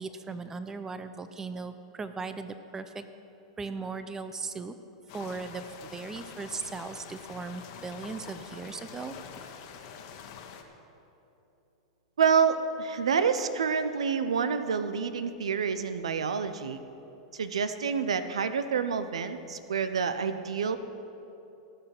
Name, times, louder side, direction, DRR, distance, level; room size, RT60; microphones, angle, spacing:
voice 1, 0.0-3.0 3.6-4.8 5.1-9.2, right 4 dB, 15° right, 10 dB, 0.7 m, -38 dB
sound 1, 5.1-10.6, left 7 dB, 55° left, 1.4 m, -45 dB
voice 2, 12.2-16.8 17.3-20.8, right 6 dB, 90° right, 11 dB, 0.7 m, -28 dB
18.0 x 6.8 x 6.0 m, 2.9 s
hypercardioid pair, 115°, 3 cm